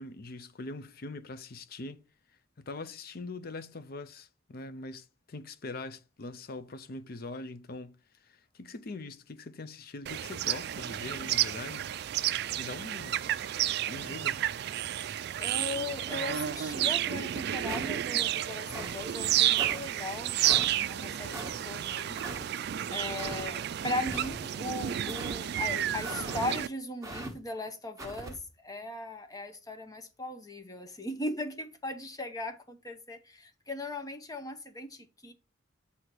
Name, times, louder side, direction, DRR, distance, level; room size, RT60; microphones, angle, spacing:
voice 1, 0.0-2.0 2.6-11.9 12.5-13.2 13.9-14.4, left 3 dB, 50° left, 0.6 m, -42 dB
sound 1, 10.1-26.7, right 11 dB, 55° right, 0.3 m, -31 dB
voice 2, 15.1-22.2 22.9-35.3, left 2 dB, 20° left, 0.8 m, -38 dB
sound 2, 17.7-18.1 18.7-19.0 19.6-19.8 20.4-20.7 21.3-21.5 22.2-22.4 23.1-23.5 24.1-24.5 25.1-25.4 26.0-26.4 27.0-27.3 28.0-28.3, right 1 dB, 15° right, 1.3 m, -40 dB
8.0 x 2.8 x 6.0 m
head